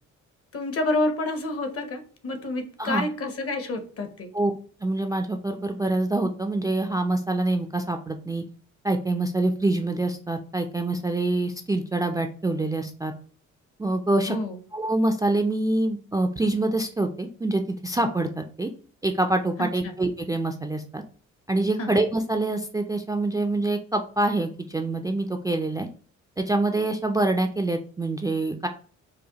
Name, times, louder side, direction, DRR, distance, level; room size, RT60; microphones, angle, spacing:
voice 1, 0.5-4.3 14.3-14.6 19.6-19.9 21.8-21.9, left 2 dB, 50° left, 7 dB, 0.8 m, -29 dB
voice 2, 4.8-8.4 8.8-13.1 13.8-14.4 14.7-18.7 19.0-21.0 21.5-25.9 26.4-28.7, right 2 dB, 10° right, 4 dB, 0.3 m, -25 dB
4.8 x 2.1 x 2.8 m, 0.42 s
cardioid pair, 90°, 30 cm